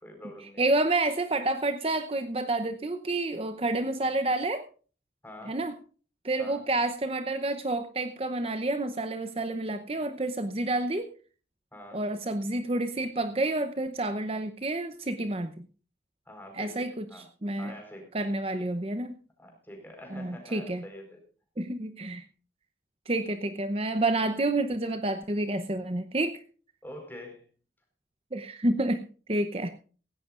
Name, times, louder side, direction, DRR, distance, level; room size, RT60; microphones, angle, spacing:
voice 1, 0.0-0.7 5.2-5.6 6.4-6.6 9.9-10.0 11.7-12.0 16.3-17.3 17.6-18.1 19.4-21.2 26.8-27.5, left 1 dB, 10° left, 3 dB, 4.6 m, -45 dB
voice 2, 0.6-4.6 5.5-5.7 6.2-11.1 11.9-15.7 16.5-17.7 18.1-19.1 20.1-20.8 21.6-22.3 23.1-26.4 28.3-29.7, right 2 dB, 35° right, 9 dB, 0.8 m, -29 dB
17.0 x 16.5 x 2.5 m, 0.39 s
head